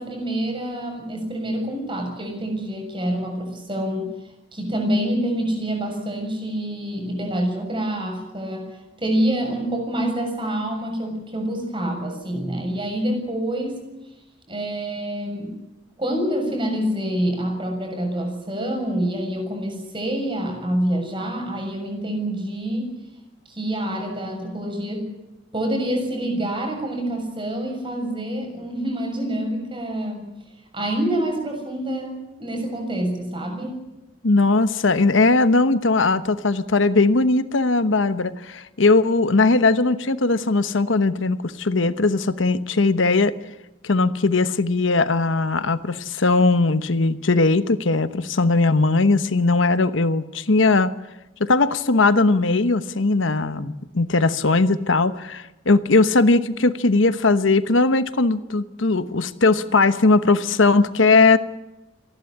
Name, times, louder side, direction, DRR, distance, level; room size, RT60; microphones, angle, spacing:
voice 1, 0.0-4.1 4.5-8.7 9.0-13.8 14.5-15.6 16.0-22.9 23.5-25.1 25.5-30.2 30.7-33.8, right 1 dB, 25° right, 2 dB, 6.8 m, -26 dB
voice 2, 34.2-43.4 43.8-50.9 51.4-61.4, left 3 dB, 80° left, 13 dB, 1.0 m, -19 dB
28.0 x 11.5 x 9.9 m, 0.99 s
head